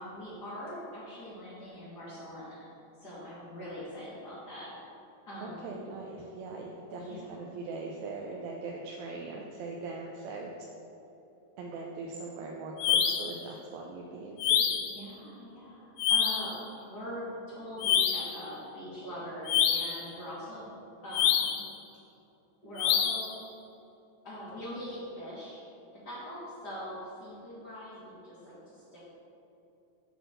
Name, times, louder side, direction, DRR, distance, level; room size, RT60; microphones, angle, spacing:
voice 1, 0.0-2.7 3.0-4.7 5.2-5.7 6.9-7.3 14.8-20.6 21.0-21.6 22.6-23.4 24.2-25.6 26.0-29.1, equal, 45° left, -9 dB, 1.4 m, -42 dB
voice 2, 5.4-10.5 11.6-14.7, right 3 dB, 85° right, -1 dB, 2.5 m, -40 dB
sound 1, 12.8-13.4 14.4-15.0 16.0-16.5 17.8-18.4 19.5-20.0 21.1-21.7 22.8-23.3, left 8 dB, 85° left, 2.4 m, -26 dB
8.1 x 4.1 x 6.6 m, 3.0 s
omnidirectional pair, 4.2 m